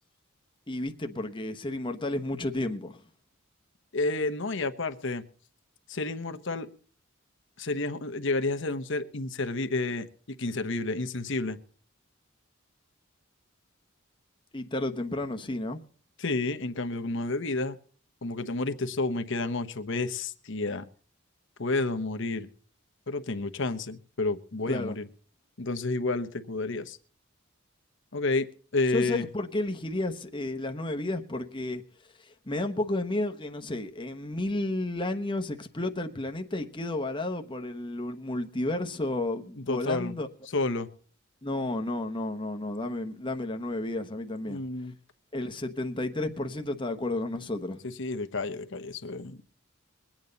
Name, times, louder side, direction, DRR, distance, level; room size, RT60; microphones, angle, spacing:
voice 1, 0.7-3.0 14.5-15.8 24.7-25.0 28.9-31.8 32.5-40.3 41.4-44.6 45.3-47.8, left 2 dB, 25° left, 1.1 m, -32 dB
voice 2, 3.9-5.2 5.9-6.7 7.6-11.6 16.2-17.8 18.2-20.9 21.6-22.5 23.1-25.1 25.6-27.0 28.1-29.3 39.7-40.2 40.5-40.9 44.5-44.9 47.8-49.5, left 3 dB, 60° left, 1.0 m, -30 dB
23.0 x 8.8 x 4.0 m
head